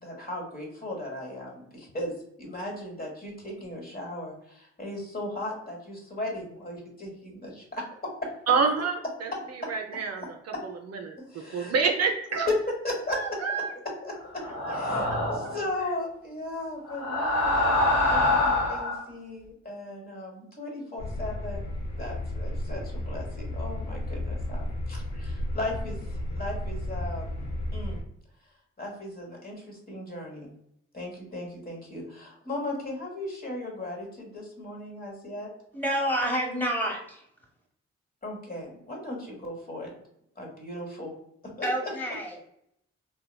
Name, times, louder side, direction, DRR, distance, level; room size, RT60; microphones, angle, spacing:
voice 1, 0.0-7.8 11.3-11.7 12.8-13.4 14.0-28.0 28.8-30.5 30.9-35.5 38.2-39.9 40.4-41.1 41.4-41.7, left 1 dB, 30° left, -1 dB, 1.2 m, -37 dB
voice 2, 8.5-9.3 9.7-10.2 10.6-11.2 11.5-12.5 13.1-13.7, right 5 dB, 60° right, 3 dB, 0.5 m, -27 dB
sound 1, 14.4-15.6 16.9-19.0, left 2 dB, 60° left, 1.1 m, -25 dB
sound 2, 21.0-28.0, left 1 dB, 80° left, 0.6 m, -33 dB
voice 3, 35.7-37.2 41.6-42.5, equal, 5° left, -2 dB, 1.3 m, -29 dB
3.0 x 2.2 x 2.2 m, 0.73 s
supercardioid pair, 40°, 29 cm